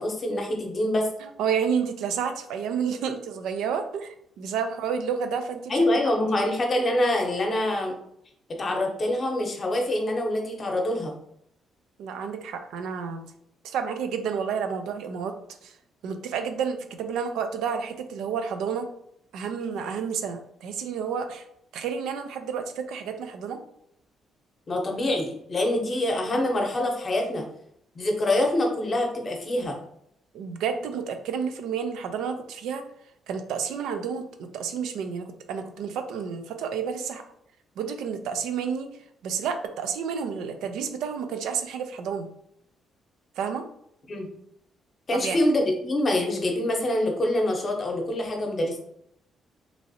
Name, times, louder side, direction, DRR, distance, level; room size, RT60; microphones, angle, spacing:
voice 1, 0.0-1.1 5.7-7.9 8.5-11.1 24.7-27.4 27.9-29.8 44.1-44.3 45.1-48.8, left 1 dB, 40° left, 1 dB, 0.8 m, -25 dB
voice 2, 1.2-5.8 12.0-13.2 13.6-15.3 15.6-15.8 16.0-18.9 19.3-21.4 21.7-23.6 30.3-32.8 33.3-37.2 37.8-38.9 39.2-42.3 43.4-43.7 45.2-45.4, right 6 dB, 85° right, 7 dB, 0.4 m, -30 dB
3.0 x 2.5 x 2.7 m, 0.73 s
cardioid pair, 90°, 0 cm